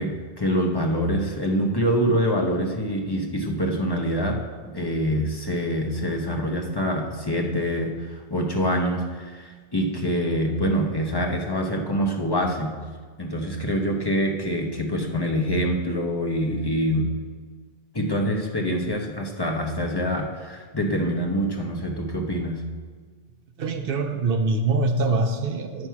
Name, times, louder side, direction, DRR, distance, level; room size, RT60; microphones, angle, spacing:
voice 1, 0.0-12.8 13.2-17.2 17.9-22.8, equal, 25° left, 1 dB, 0.8 m, -25 dB
voice 2, 23.6-25.9, right 3 dB, 65° right, 7 dB, 0.7 m, -24 dB
9.7 x 5.9 x 4.6 m, 1.5 s
omnidirectional pair, 1.1 m